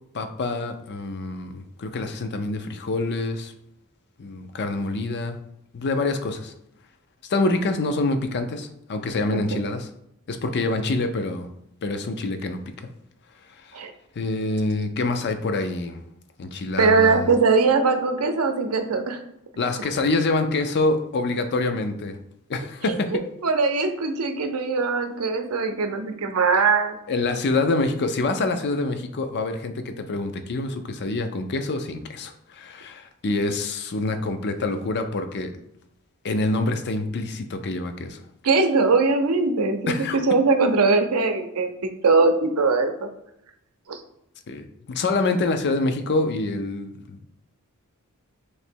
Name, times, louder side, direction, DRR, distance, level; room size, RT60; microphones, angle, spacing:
voice 1, 0.1-3.5 4.2-5.4 5.7-6.5 7.3-9.9 10.3-11.5 11.8-12.6 13.6-13.8 14.2-16.0 16.4-17.3 19.6-22.2 22.5-23.2 27.1-35.5 36.2-38.2 39.9-40.2 44.5-47.3, left 2 dB, 50° left, 8 dB, 0.5 m, -26 dB
voice 2, 16.8-19.2 23.1-27.0 38.4-43.1 43.9-44.0, right 4 dB, 70° right, 6 dB, 0.6 m, -21 dB
3.2 x 2.9 x 4.4 m, 0.80 s
head